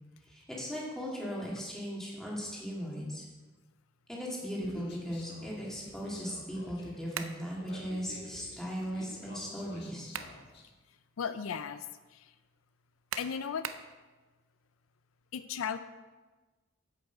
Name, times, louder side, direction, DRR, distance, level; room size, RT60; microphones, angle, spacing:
voice 1, 0.3-3.2 4.1-10.1, equal, 5° left, -5 dB, 2.2 m, -38 dB
Human voice, 4.6-10.6, left 2 dB, 55° left, 1.5 m, -49 dB
sound 1, 7.1-7.4 9.8-10.4 10.9-11.0 13.1-13.9, right 8 dB, 85° right, 0.6 m, -39 dB
voice 2, 11.2-12.3 13.2-13.7 15.3-15.8, left 7 dB, 90° left, 12 dB, 0.4 m, -36 dB
8.1 x 7.9 x 4.6 m, 1.2 s
head